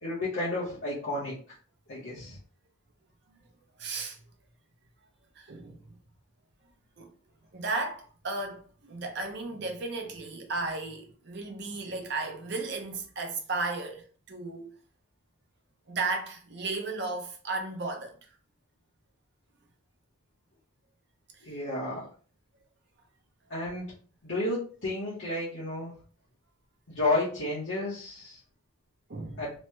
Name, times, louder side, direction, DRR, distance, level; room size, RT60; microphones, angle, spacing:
voice 1, 0.0-1.4 1.9-2.4 21.4-22.1 23.5-23.9 24.2-25.9 26.9-28.4 29.4-29.5, left 2 dB, 60° left, 1.0 m, -31 dB
voice 2, 3.8-4.2 5.4-5.9 7.0-7.1 7.5-14.7 15.9-18.1 21.3-21.4 29.1-29.4, right 3 dB, 55° right, 0.7 m, -34 dB
3.1 x 2.2 x 3.1 m
head